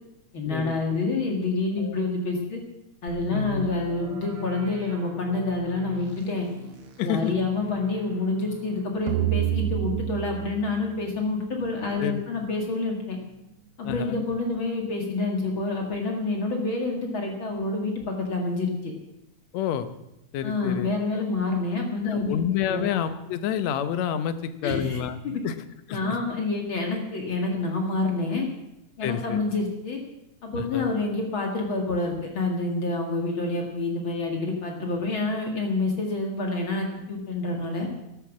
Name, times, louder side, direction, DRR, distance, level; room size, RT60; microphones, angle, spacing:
voice 1, 0.3-2.6 3.0-6.5 7.0-13.2 13.8-18.9 20.4-22.9 24.6-25.4 25.9-28.5 29.0-30.0 30.4-37.9, left 3 dB, 45° left, 1 dB, 2.5 m, -28 dB
sound 1, 3.1-12.8 13.1-13.2 13.8-14.0, equal, 50° right, 2.5 m, -43 dB
voice 2, 3.3-3.7 7.0-7.3 12.0-12.2 13.8-14.1 19.5-19.9 20.3-20.9 21.2-21.3 22.1-24.4 24.6-25.2 25.4-25.5 25.9-26.2 29.0-29.4 30.7-30.9, left 9 dB, 70° left, 11 dB, 2.1 m, -28 dB
sound 2, 9.1-12.3, right 15 dB, 75° right, 1.4 m, -29 dB
13.0 x 12.0 x 7.3 m, 0.88 s
omnidirectional pair, 3.4 m